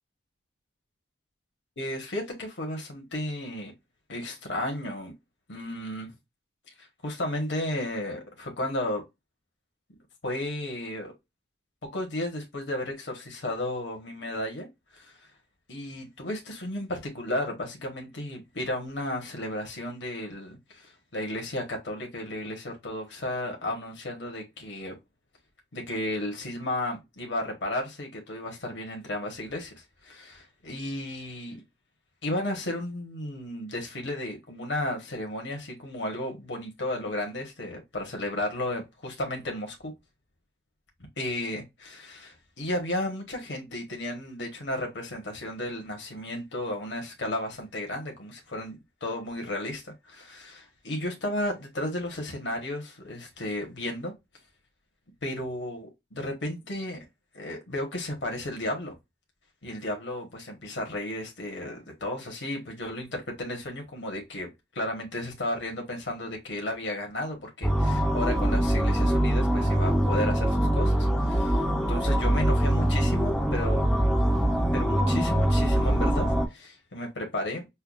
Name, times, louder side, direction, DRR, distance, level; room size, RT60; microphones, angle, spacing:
voice 1, 1.8-3.7 4.1-5.1 5.5-6.1 6.7-9.0 10.2-11.1 11.9-14.7 14.9-15.2 15.7-24.9 25.7-31.6 32.2-39.9 41.2-54.1 55.2-57.0 57.3-58.9 59.6-64.5 64.7-73.9 74.7-77.7, left 1 dB, 65° left, 1.0 m, -33 dB
sound 1, 67.6-76.5, right 1 dB, 5° left, 0.4 m, -23 dB
5.6 x 2.2 x 2.3 m
head